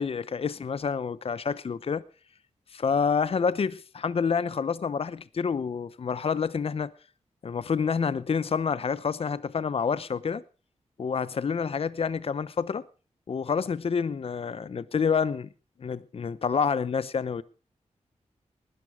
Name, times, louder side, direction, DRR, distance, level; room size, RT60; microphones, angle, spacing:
voice 1, 0.0-2.0 2.7-6.9 7.4-10.4 11.0-12.8 13.3-15.5 15.8-17.4, left 6 dB, 50° left, 0.8 m, -28 dB
19.5 x 12.5 x 4.9 m
wide cardioid pair, 115°, 12 cm